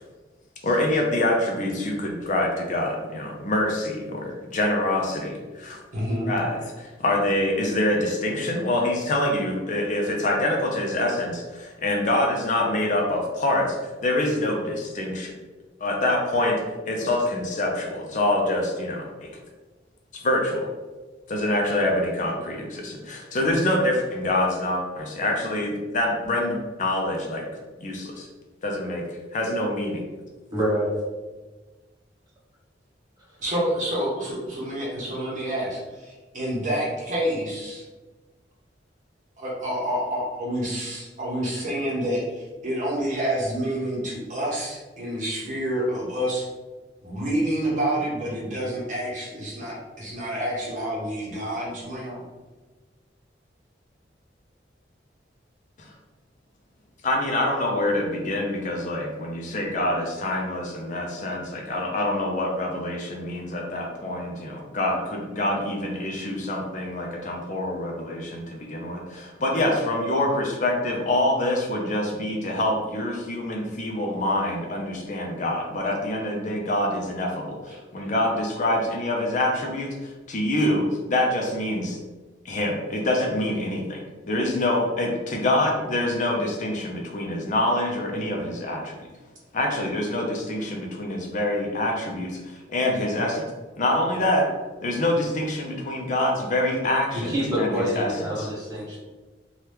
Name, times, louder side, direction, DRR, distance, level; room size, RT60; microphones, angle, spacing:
voice 1, 0.6-5.8 6.3-15.3 15.8-16.6 16.9-19.3 20.1-20.7 21.3-27.4 27.8-28.3 28.6-29.0 29.3-30.0 55.8-55.9 57.0-82.0 82.4-89.0 89.5-93.5 93.8-94.5 94.8-98.1 98.4-98.5, left 1 dB, 45° left, 0 dB, 0.5 m, -25 dB
voice 2, 5.9-6.3 33.4-37.8 39.4-46.5 47.0-52.2 77.7-77.8, right 1 dB, 45° right, -5 dB, 1.0 m, -28 dB
voice 3, 30.5-30.9 33.3-33.4 97.1-99.0, equal, 20° right, -8 dB, 1.2 m, -26 dB
2.9 x 2.3 x 3.3 m, 1.2 s
head